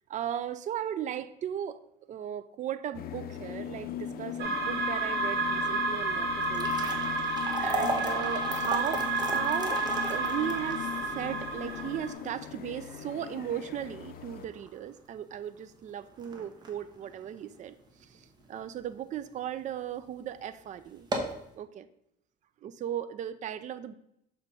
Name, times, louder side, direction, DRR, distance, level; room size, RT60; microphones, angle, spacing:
voice 1, 0.1-1.8 2.1-6.7 7.6-9.8 10.1-21.1 21.5-21.9 22.6-23.9, right 10 dB, 45° right, 12 dB, 0.5 m, -37 dB
sound 1, 2.9-14.5, left 10 dB, 60° left, 0.5 m, -40 dB
sound 2, 4.4-12.1, right 2 dB, 80° right, 1.7 m, -31 dB
sound 3, 6.3-18.6 19.1-19.2 19.9-20.0 20.4-20.5 20.9-21.5, right 2 dB, 25° right, 1.2 m, -37 dB
6.7 x 3.6 x 5.2 m, 0.75 s
cardioid pair, 110°, 17 cm